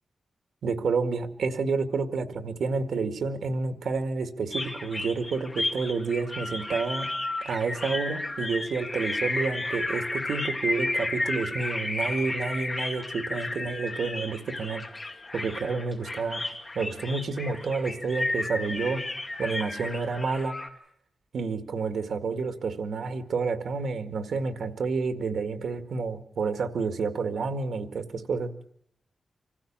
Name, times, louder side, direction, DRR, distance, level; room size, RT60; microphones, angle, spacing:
voice 1, 0.6-7.1 7.4-14.8 15.3-16.4 16.8-19.0 19.4-20.5 21.3-28.5, right 4 dB, 90° right, 8 dB, 1.9 m, -29 dB
sound 1, 4.5-20.7, left 2 dB, 20° left, 2.2 m, -33 dB
26.0 x 15.5 x 8.7 m, 0.71 s
wide cardioid pair, 155°, 0 cm